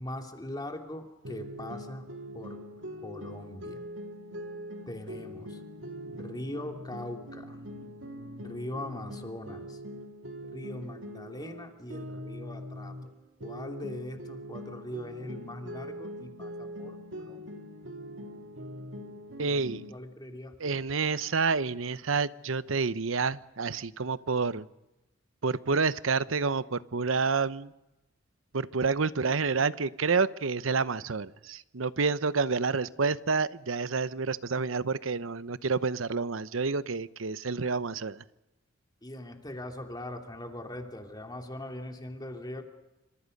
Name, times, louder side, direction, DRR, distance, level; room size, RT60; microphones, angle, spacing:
voice 1, 0.0-2.1 2.3-2.6 3.0-3.8 4.9-5.6 6.1-7.6 8.4-9.8 10.5-13.1 13.4-17.5 19.9-20.7 39.0-42.6, left 1 dB, 20° left, 3 dB, 2.9 m, -41 dB
sound 1, 1.2-13.1 13.4-19.9, equal, 70° right, 3.3 m, -42 dB
voice 2, 19.4-19.8 20.6-24.7 25.4-27.7 28.5-38.2, right 4 dB, 85° right, 15 dB, 0.8 m, -29 dB
27.5 x 26.0 x 5.4 m, 0.97 s
head